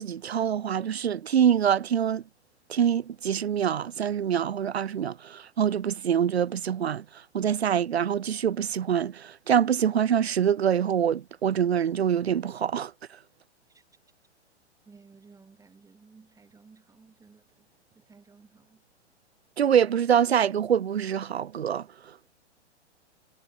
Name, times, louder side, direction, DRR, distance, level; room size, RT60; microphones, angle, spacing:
voice 1, 0.0-2.2 2.7-7.0 7.3-12.9 19.6-21.9, right 8 dB, 60° right, 1.2 m, -25 dB
voice 2, 14.9-18.8, right 4 dB, 10° right, 7.2 m, -56 dB
figure-of-eight pair, 110°, 35 cm